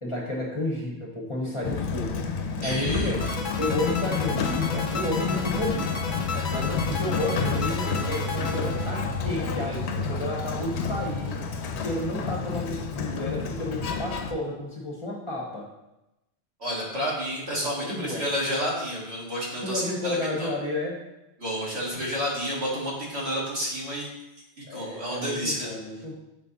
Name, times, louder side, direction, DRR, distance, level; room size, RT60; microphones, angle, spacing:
voice 1, 0.0-3.2 3.6-6.0 6.5-11.4 11.8-15.7 17.8-18.2 19.6-21.0 24.7-26.1, left 1 dB, 30° left, -2 dB, 1.1 m, -31 dB
Sliding door, 1.6-14.3, left 5 dB, 85° left, 0.9 m, -29 dB
voice 2, 2.6-3.3 16.6-20.5 21.4-24.1 24.6-25.7, equal, 80° right, -5 dB, 2.0 m, -30 dB
sound 1, 3.2-9.5, left 4 dB, 50° left, 0.8 m, -34 dB
5.9 x 4.2 x 4.0 m, 0.93 s
omnidirectional pair, 1.1 m